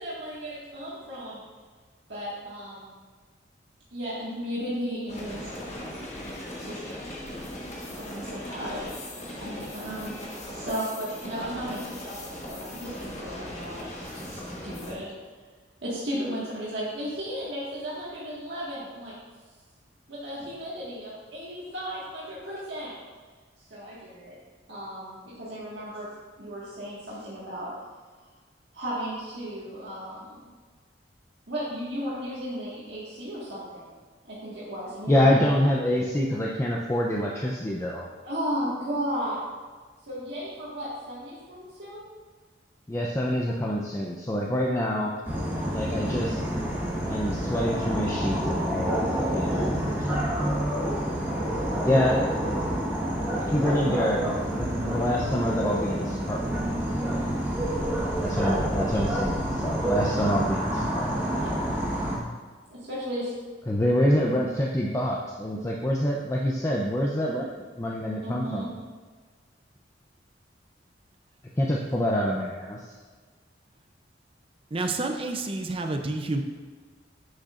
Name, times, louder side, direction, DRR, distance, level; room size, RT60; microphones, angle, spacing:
voice 1, 0.0-1.4 2.1-3.0 3.9-5.8 6.6-6.8 7.8-15.1 15.8-19.1 20.1-22.9 23.7-24.4 24.7-26.1 26.4-27.7 28.7-30.4 31.5-34.0 34.3-35.3 38.2-39.5 40.1-42.1 45.3-45.7 49.2-49.8 61.3-61.7 62.7-63.3 68.2-68.7, equal, 65° right, -8 dB, 1.7 m, -35 dB
sound 1, 5.1-14.9, left 1 dB, 40° left, 1.3 m, -38 dB
voice 2, 35.1-38.1 42.9-45.1 45.7-46.4 47.1-49.0 49.3-50.1 51.8-52.6 53.4-56.6 57.0-57.3 58.2-61.3 63.7-67.5 67.8-68.7 71.6-72.9, equal, 15° left, -3 dB, 0.5 m, -26 dB
sound 2, 45.3-62.2, right 1 dB, 10° right, 1.2 m, -28 dB
voice 3, 74.7-76.4, right 2 dB, 30° right, 5 dB, 0.5 m, -29 dB
9.9 x 6.4 x 2.5 m, 1.4 s
head